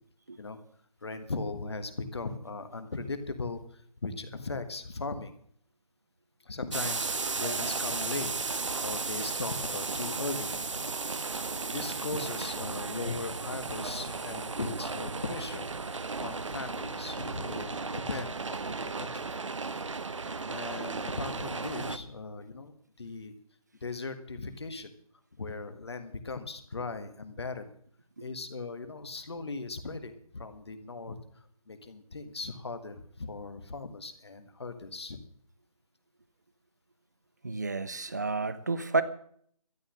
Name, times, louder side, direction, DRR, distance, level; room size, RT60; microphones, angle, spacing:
voice 1, 1.0-5.3 6.4-8.3 8.8-10.6 11.7-15.7 16.2-19.3 20.5-23.3 23.8-24.9 25.4-27.7 28.2-35.2, left 3 dB, 45° left, 9 dB, 1.6 m, -38 dB
sound 1, 6.7-22.0, right 4 dB, 55° right, 0.9 m, -35 dB
voice 2, 37.4-39.0, right 3 dB, 30° right, 15 dB, 0.6 m, -30 dB
12.5 x 11.0 x 6.4 m, 0.62 s
hypercardioid pair, 180°, 19 cm